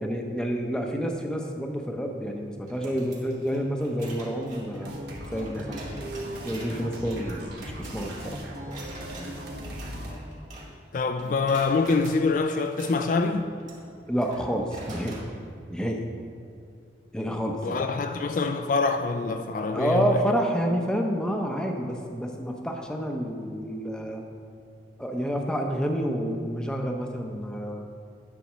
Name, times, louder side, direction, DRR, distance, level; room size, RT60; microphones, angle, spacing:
voice 1, 0.0-5.0 5.3-6.0 6.4-8.4 14.1-15.2 15.7-16.1 17.1-17.8 19.7-24.3 25.0-27.9, equal, 5° left, 0.7 m, -29 dB
sound 1, 2.7-10.9 11.2-12.2 12.6-15.3, right 1 dB, 45° right, 2.0 m, -45 dB
sound 2, 4.8-10.1, right 1 dB, 65° right, 1.3 m, -37 dB
voice 2, 10.9-13.5 17.6-20.2, left 4 dB, 50° left, 0.3 m, -25 dB
10.5 x 4.2 x 6.1 m
head